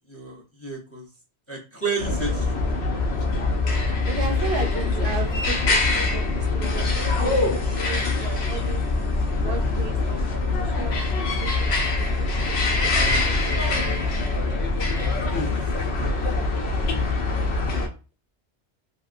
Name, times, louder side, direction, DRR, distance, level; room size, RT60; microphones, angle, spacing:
voice 1, 0.1-1.1 1.5-2.6 13.3-13.7 15.3-15.7 16.0-16.1 16.6-16.9, right 2 dB, 15° left, 0 dB, 0.6 m, -32 dB
sound 1, 2.0-17.9, left 3 dB, 75° left, 0.9 m, -24 dB
voice 2, 4.1-8.8 9.4-11.1 11.4-12.3 12.8-13.3, right 5 dB, 70° right, 5 dB, 0.7 m, -35 dB
2.9 x 2.8 x 2.5 m, 0.32 s
omnidirectional pair, 1.1 m